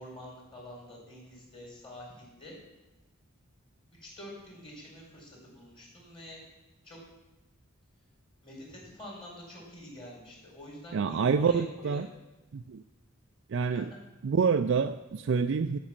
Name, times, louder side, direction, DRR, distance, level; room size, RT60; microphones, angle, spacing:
voice 1, 0.0-2.6 4.0-6.4 6.8-7.0 8.4-12.1 13.7-14.0, left 1 dB, 25° left, -3 dB, 4.2 m, -47 dB
voice 2, 10.9-12.1 12.5-12.8 13.5-13.9 14.2-15.8, right 5 dB, 60° right, 7 dB, 0.4 m, -27 dB
12.5 x 5.5 x 7.2 m, 1.0 s
head